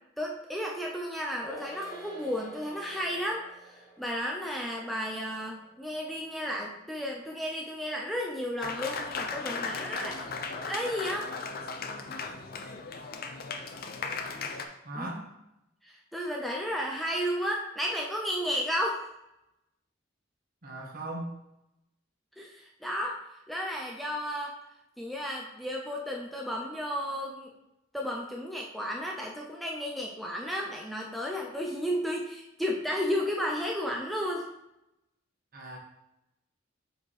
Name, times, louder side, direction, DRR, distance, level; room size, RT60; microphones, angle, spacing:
voice 1, 0.2-10.3 10.6-11.3 14.9-15.1 15.8-19.0 22.4-23.2 23.5-24.6 25.0-27.5 27.9-34.5, equal, ahead, -2 dB, 0.4 m, -33 dB
sound 1, 1.4-8.1 8.4-8.5, right 1 dB, 15° left, 1.2 m, -50 dB
Applause, 8.6-14.6, left 4 dB, 50° left, 0.5 m, -36 dB
voice 2, 14.8-15.2 20.6-21.3 35.5-35.8, right 1 dB, 50° right, -1 dB, 1.3 m, -38 dB
6.9 x 4.3 x 3.2 m, 0.88 s
head